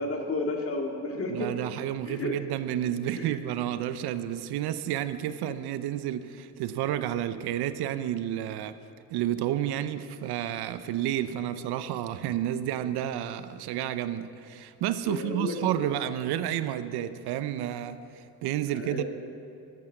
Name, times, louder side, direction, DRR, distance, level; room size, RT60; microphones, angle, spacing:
voice 1, 0.0-1.5 2.0-2.4 3.1-3.4 15.0-15.9 18.7-19.0, left 2 dB, 35° left, 2 dB, 2.1 m, -32 dB
voice 2, 1.3-8.8 9.1-19.0, right 11 dB, 75° right, 13 dB, 0.7 m, -30 dB
12.0 x 9.7 x 7.4 m, 2.7 s
supercardioid pair, 85°, 39 cm